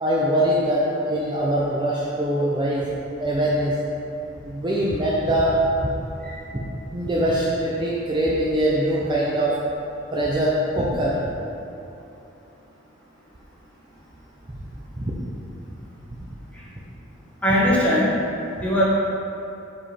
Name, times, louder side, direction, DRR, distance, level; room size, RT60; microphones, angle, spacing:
voice 1, 0.0-2.9 3.2-3.8 4.5-5.6 5.8-5.9 6.5-6.6 6.9-9.5 10.1-11.1 15.0-15.1, right 1 dB, 20° right, -6 dB, 0.6 m, -22 dB
voice 2, 17.4-18.1 18.6-18.8, equal, 5° left, -7 dB, 1.4 m, -20 dB
7.3 x 5.1 x 4.3 m, 2.9 s
head